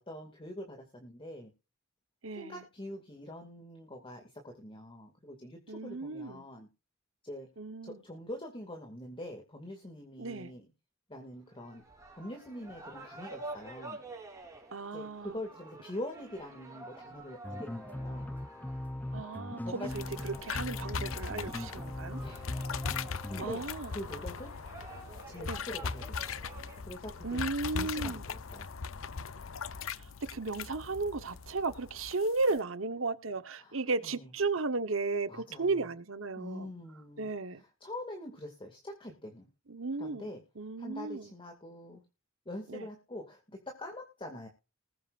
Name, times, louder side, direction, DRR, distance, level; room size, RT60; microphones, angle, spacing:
voice 1, 0.0-1.5 2.3-6.7 7.2-7.5 7.8-10.7 11.1-11.8 12.1-14.0 14.4-14.5 14.9-18.3 19.6-19.9 22.2-22.4 23.3-24.5 25.3-26.3 26.8-28.7 33.6-34.3 35.3-35.9 36.4-39.5 40.0-40.4 40.8-42.0 42.5-44.5, left 1 dB, 25° left, 2.3 m, -44 dB
voice 2, 2.2-2.6 5.7-6.4 7.6-8.0 10.2-10.5 14.7-15.3 19.1-22.2 23.4-23.9 25.5-25.6 27.2-28.2 30.3-36.7 37.2-37.6 39.7-40.3 40.6-41.3 42.7-42.8, right 3 dB, 75° right, 1.2 m, -34 dB
sound 1, 11.5-26.8, right 2 dB, 15° right, 3.7 m, -49 dB
sound 2, 17.4-23.5, left 1 dB, 10° left, 0.5 m, -40 dB
sound 3, 19.9-32.6, left 5 dB, 80° left, 0.7 m, -40 dB
20.0 x 7.7 x 2.6 m
head